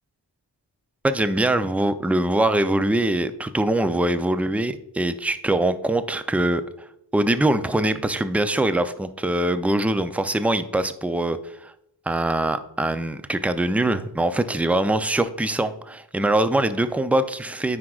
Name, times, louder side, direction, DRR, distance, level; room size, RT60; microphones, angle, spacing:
voice 1, 1.0-11.7 12.1-17.8, right 1 dB, 5° right, 11 dB, 0.4 m, -23 dB
9.6 x 4.9 x 2.4 m, 0.79 s
wide cardioid pair, 50°, 44 cm